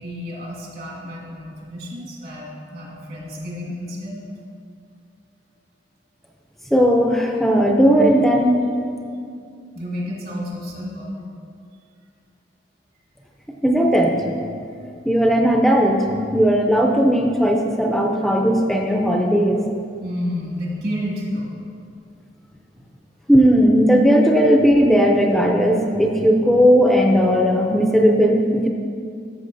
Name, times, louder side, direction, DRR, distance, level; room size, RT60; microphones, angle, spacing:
voice 1, 0.0-4.2 9.7-11.2 20.0-21.5, equal, 60° right, -5 dB, 2.1 m, -30 dB
voice 2, 6.7-8.6 13.6-14.3 15.1-19.6 23.3-28.7, equal, ahead, 1 dB, 0.5 m, -16 dB
13.0 x 6.5 x 2.6 m, 2.3 s
head